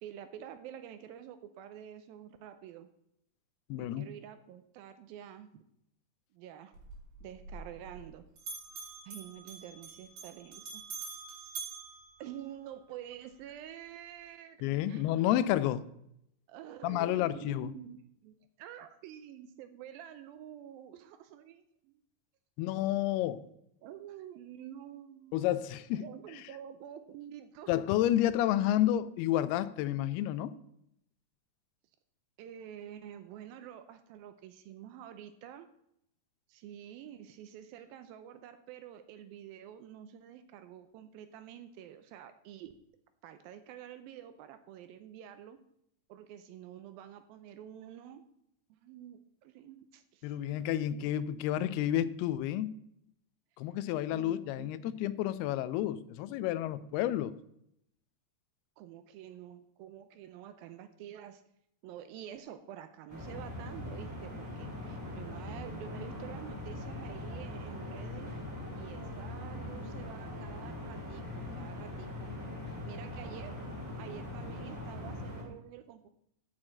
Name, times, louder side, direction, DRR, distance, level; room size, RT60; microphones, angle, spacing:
voice 1, 0.0-2.9 3.8-5.7 6.3-6.8 7.2-8.3 9.1-10.8 12.2-15.1 16.5-22.0 23.8-25.4 26.0-27.7 32.4-35.7 36.5-42.7 43.2-45.6 46.1-48.2 48.7-50.3 51.0-51.1 54.1-54.9 58.8-61.4 61.8-68.3 68.8-72.4 72.9-73.6 74.0-76.1, right 10 dB, 80° right, 2.2 m, -48 dB
voice 2, 3.7-4.1 14.6-15.9 16.8-17.7 22.6-23.4 25.3-26.0 27.7-30.5 50.2-52.7 53.6-57.4, left 12 dB, 85° left, 2.5 m, -30 dB
Bell, 6.7-8.1 8.4-12.9, right 4 dB, 65° right, 4.3 m, -45 dB
sound 1, 63.1-75.4, left 1 dB, 15° right, 3.8 m, -41 dB
7.3 x 6.2 x 7.6 m
omnidirectional pair, 4.5 m